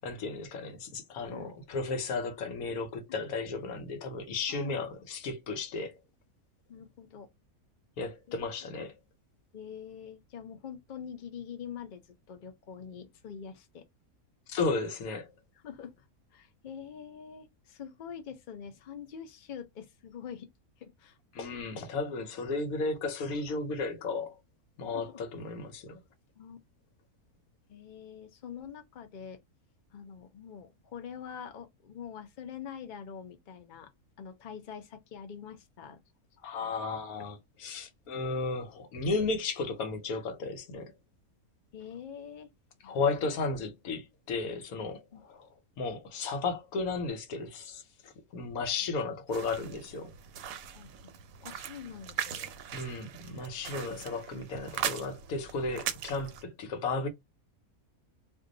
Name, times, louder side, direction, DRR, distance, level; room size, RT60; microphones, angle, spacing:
voice 1, 0.0-5.9 8.0-8.9 14.5-15.3 21.3-24.3 24.8-26.0 36.4-40.9 42.8-45.5 45.8-50.1 52.7-57.1, left 3 dB, 80° left, 1.2 m, -34 dB
voice 2, 4.5-5.0 6.7-7.3 8.3-8.7 9.5-13.9 15.6-16.0 16.3-20.5 20.8-21.2 21.5-21.6 24.8-25.2 26.4-26.6 27.7-29.4 29.9-33.9 34.2-36.0 36.6-36.7 41.7-42.5 42.8-43.3 45.1-45.2 50.7-51.1 51.4-52.5, left 7 dB, 55° left, 0.5 m, -45 dB
sound 1, 49.3-56.4, right 9 dB, 75° right, 1.0 m, -39 dB
2.6 x 2.3 x 3.7 m
omnidirectional pair, 1.5 m